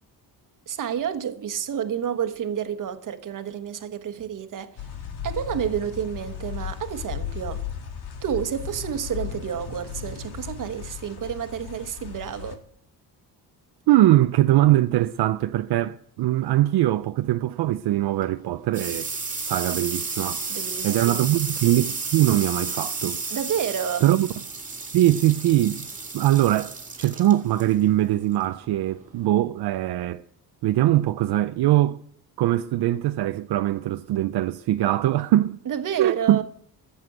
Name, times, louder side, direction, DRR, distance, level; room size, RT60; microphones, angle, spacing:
voice 1, 0.7-4.8 5.2-7.6 8.2-12.6 20.5-21.3 23.3-24.1 35.6-36.4, right 8 dB, 55° right, 1.3 m, -30 dB
sound 1, 4.8-12.5, left 8 dB, 75° left, 2.1 m, -36 dB
voice 2, 13.9-19.1 19.5-20.5 20.8-23.2 24.0-24.3 24.9-25.9 26.1-30.2 30.6-32.0 32.4-35.6 36.0-36.4, right 14 dB, 80° right, 0.6 m, -22 dB
sound 2, 18.0-29.3, right 4 dB, 20° right, 2.1 m, -33 dB
14.5 x 7.9 x 7.9 m
cardioid pair, 145°, 39 cm